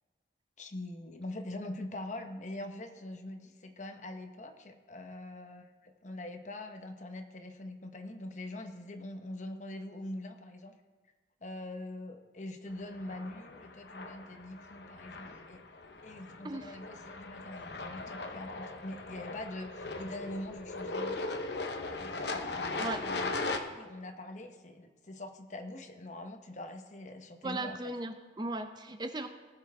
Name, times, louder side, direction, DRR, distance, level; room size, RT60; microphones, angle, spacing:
voice 1, 0.6-10.8 11.4-15.6 16.0-21.2 21.9-27.8, left 1 dB, 40° left, 6 dB, 0.9 m, -43 dB
sound 1, 12.9-23.6, left 3 dB, 65° left, 0.9 m, -39 dB
voice 2, 16.4-16.8 22.7-23.0 27.4-29.3, right 2 dB, 25° right, 7 dB, 0.5 m, -37 dB
19.0 x 7.1 x 3.5 m, 1.4 s
head